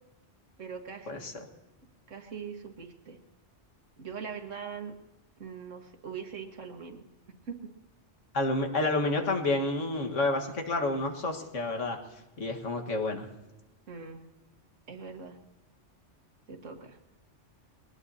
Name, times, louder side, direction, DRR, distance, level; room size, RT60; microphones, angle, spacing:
voice 1, 0.6-1.3 2.1-3.2 4.0-5.0 5.4-7.1 7.5-7.7 13.9-14.2 14.9-15.4 16.5-17.0, right 6 dB, 85° right, 4 dB, 1.9 m, -41 dB
voice 2, 8.3-12.0 12.4-13.3, left 2 dB, 80° left, 4 dB, 2.0 m, -29 dB
21.5 x 19.0 x 2.8 m, 1.0 s
omnidirectional pair, 1.3 m